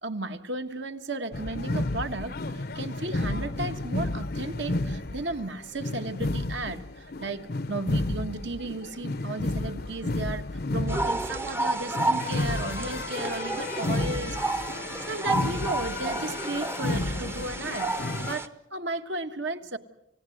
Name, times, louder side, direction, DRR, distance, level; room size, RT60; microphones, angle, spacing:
voice 1, 0.0-14.7 15.1-19.8, right 2 dB, 60° right, 1.5 m, -35 dB
sound 1, 1.3-18.4, left 2 dB, 50° left, 0.8 m, -32 dB
sound 2, 10.9-18.5, right 2 dB, 10° right, 0.8 m, -31 dB
29.5 x 17.0 x 7.9 m
head